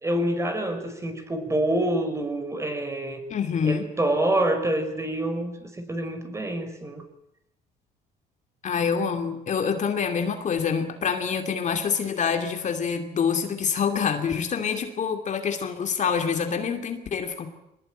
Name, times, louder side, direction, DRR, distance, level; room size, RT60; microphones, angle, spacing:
voice 1, 0.0-3.2 3.6-7.0, right 1 dB, 15° right, 7 dB, 4.9 m, -27 dB
voice 2, 3.3-3.9 8.6-17.5, left 6 dB, 45° left, 6 dB, 2.6 m, -26 dB
23.5 x 20.0 x 9.0 m, 0.82 s
cardioid pair, 110°, 17 cm